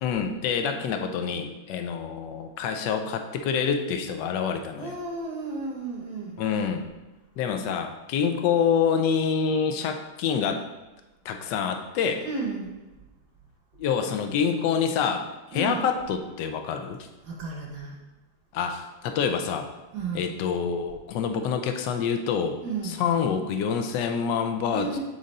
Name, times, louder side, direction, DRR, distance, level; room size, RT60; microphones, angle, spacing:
voice 1, 0.0-4.9 6.4-6.8 7.4-10.7 11.2-12.3 13.8-17.0 18.5-19.7 20.1-22.6 22.8-25.0, left 6 dB, 70° left, 5 dB, 1.1 m, -27 dB
voice 2, 4.8-6.4 12.2-12.7 15.5-15.8 17.2-17.9 19.9-20.3 22.6-23.0 24.7-25.0, right 3 dB, 55° right, -1 dB, 1.3 m, -33 dB
7.7 x 3.8 x 4.1 m, 1.1 s
omnidirectional pair, 2.4 m